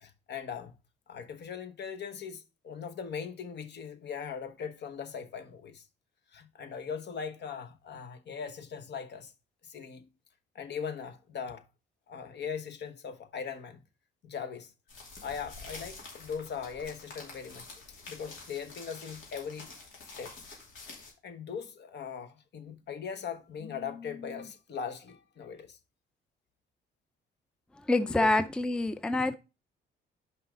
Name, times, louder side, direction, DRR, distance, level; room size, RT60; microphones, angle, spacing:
voice 1, 0.0-0.7 1.1-5.8 6.3-9.3 9.6-10.0 10.5-11.6 12.1-13.8 14.2-14.7 15.2-17.7 18.1-19.7 20.2-20.4 21.2-25.8 28.2-28.3, left 6 dB, 60° left, 1.1 m, -40 dB
sound 1, 14.9-21.1, left 3 dB, 80° left, 2.6 m, -48 dB
voice 2, 27.9-29.3, left 2 dB, 5° left, 0.4 m, -26 dB
5.6 x 4.8 x 5.0 m
cardioid pair, 90°, 20 cm